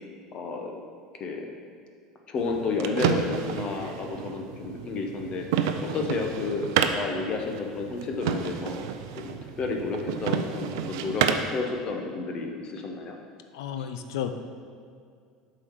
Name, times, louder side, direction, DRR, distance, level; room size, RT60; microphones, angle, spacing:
voice 1, 0.3-0.8 1.2-1.5 2.3-5.5 5.8-8.9 9.2-11.3 11.5-13.2 13.8-13.9, left 4 dB, 45° left, 2 dB, 1.0 m, -31 dB
sound 1, 2.4-11.6, right 8 dB, 75° right, 0.4 m, -30 dB
voice 2, 13.5-14.3, left 10 dB, 80° left, 8 dB, 0.5 m, -32 dB
7.5 x 4.1 x 4.8 m, 2.3 s
hypercardioid pair, 90°, 2 cm